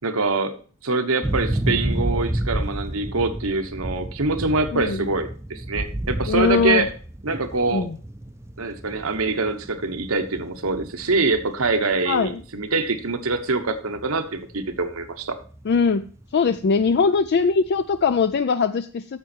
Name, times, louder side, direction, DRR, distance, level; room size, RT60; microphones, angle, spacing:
voice 1, 0.0-0.6 0.8-6.9 7.2-7.8 8.6-15.4, right 3 dB, 75° right, 7 dB, 1.1 m, -24 dB
sound 1, 1.2-17.4 17.7-18.1, right 1 dB, 15° right, 0.5 m, -31 dB
voice 2, 4.7-5.1 6.3-6.9 7.7-8.0 12.1-12.4 15.7-16.1 16.3-19.1, left 5 dB, 50° left, 10 dB, 0.4 m, -21 dB
9.3 x 7.1 x 4.4 m, 0.40 s
head